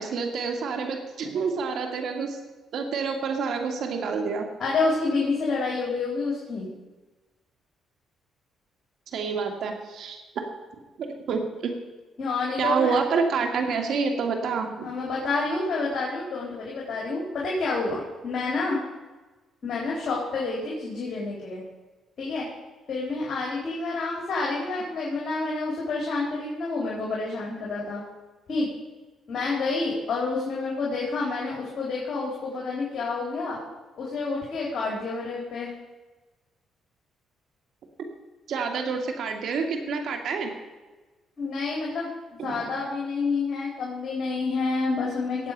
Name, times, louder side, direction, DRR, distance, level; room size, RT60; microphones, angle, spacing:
voice 1, 0.0-2.4 2.7-4.5 9.1-10.2 11.0-11.7 12.6-14.9 38.5-40.5 42.4-42.7, right 5 dB, 70° right, 4 dB, 2.4 m, -28 dB
voice 2, 4.6-6.7 12.2-13.0 14.8-18.8 19.6-21.6 22.2-22.5 22.9-28.0 28.5-28.7 29.3-33.6 34.0-35.7 41.4-42.1 42.4-45.5, left 3 dB, 55° left, -4 dB, 3.9 m, -28 dB
18.0 x 7.9 x 5.5 m, 1.2 s
cardioid pair, 90°, 0 cm